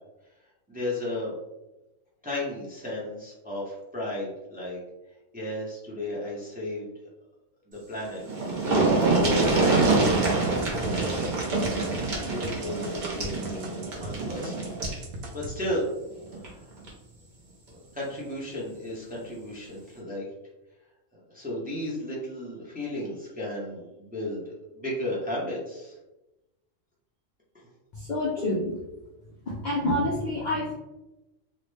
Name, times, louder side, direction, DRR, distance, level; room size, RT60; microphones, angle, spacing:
voice 1, 0.7-1.3 2.2-4.8 5.3-6.9 7.7-8.2 9.1-9.6 11.0-11.4 12.2-14.7 15.3-15.9 16.3-16.7 17.7-20.2 21.1-25.9 27.5-27.7, left 1 dB, 15° right, -5 dB, 0.4 m, -34 dB
sound 1, 7.9-8.0 8.2-15.0 16.3-16.5 16.9-17.0, right 3 dB, 45° right, 0.6 m, -25 dB
sound 2, 9.2-14.2 14.4-15.6, right 1 dB, 90° right, 1.0 m, -39 dB
voice 2, 27.9-28.7 29.5-30.7, left 1 dB, 85° left, -3 dB, 0.4 m, -27 dB
2.8 x 2.1 x 3.1 m, 0.99 s
omnidirectional pair, 1.4 m